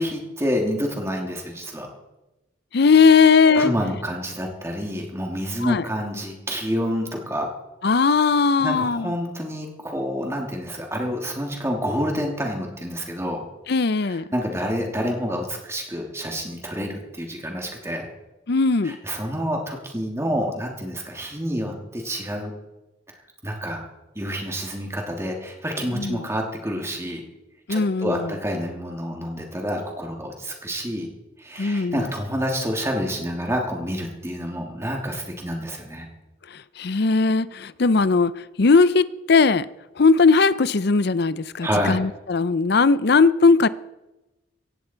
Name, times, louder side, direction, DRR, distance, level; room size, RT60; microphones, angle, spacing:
voice 1, 0.0-1.9 3.5-7.5 8.6-13.4 14.1-18.1 18.8-22.5 23.4-23.8 24.1-27.2 27.7-31.1 31.4-36.1 41.6-42.0, equal, 15° right, 3.0 m, -28 dB
voice 2, 2.7-3.7 5.6-5.9 7.8-9.1 13.7-14.2 18.5-19.0 25.9-26.2 27.7-28.3 31.6-32.1 36.8-39.7 40.0-43.7, left 4 dB, 55° left, 0.6 m, -18 dB
17.0 x 16.0 x 4.6 m
head